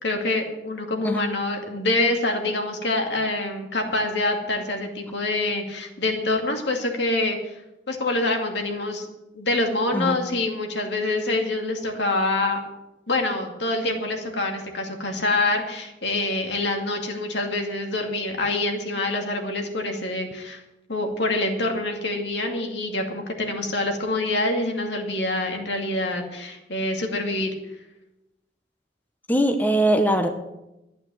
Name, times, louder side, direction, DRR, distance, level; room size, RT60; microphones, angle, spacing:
voice 1, 0.0-7.4 7.9-9.1 9.3-12.6 13.1-20.6 20.9-27.5, left 2 dB, 80° left, 3 dB, 2.4 m, -26 dB
voice 2, 29.3-30.3, right 1 dB, 10° left, 5 dB, 0.9 m, -21 dB
12.0 x 8.8 x 7.8 m, 0.94 s
head